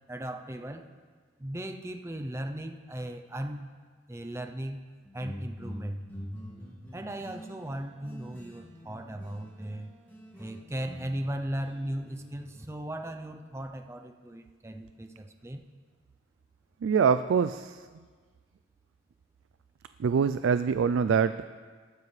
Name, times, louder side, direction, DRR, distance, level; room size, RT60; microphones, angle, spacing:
voice 1, 0.1-0.9 1.4-3.7 4.1-4.8 5.1-6.0 6.9-9.9 10.4-15.6, right 1 dB, 15° right, 5 dB, 0.5 m, -37 dB
sound 1, 5.0-9.8 10.1-12.6, equal, 10° left, 2.4 m, -44 dB
voice 2, 16.8-17.8 20.0-21.5, right 6 dB, 85° right, 12 dB, 0.3 m, -24 dB
19.5 x 9.5 x 3.3 m, 1.5 s
head